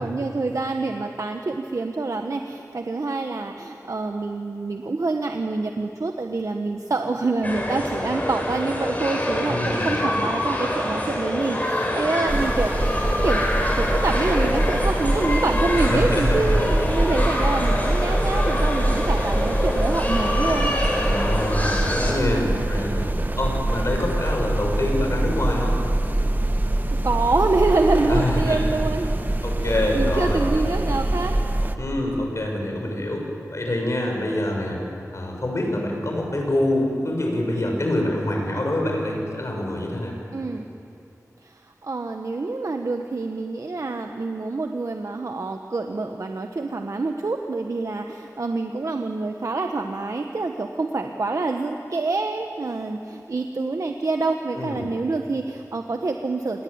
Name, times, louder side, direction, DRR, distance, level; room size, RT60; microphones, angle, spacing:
voice 1, 0.0-12.7 13.2-20.7 26.9-29.1 29.6-31.3 40.3-40.7 41.4-56.6, right 3 dB, 65° right, 4 dB, 1.3 m, -26 dB
sound 1, 7.4-22.1, left 1 dB, 25° left, 6.0 m, -26 dB
voice 2, 9.5-9.9 15.8-16.7 21.0-23.1 23.4-25.8 28.1-28.6 29.4-30.4 31.8-34.8 35.1-40.2 54.5-54.9, left 1 dB, 50° left, 1 dB, 7.0 m, -26 dB
sound 2, 12.3-31.8, right 1 dB, 30° right, 1.6 m, -24 dB
28.0 x 21.0 x 8.9 m, 2.7 s
wide cardioid pair, 70°, 6 cm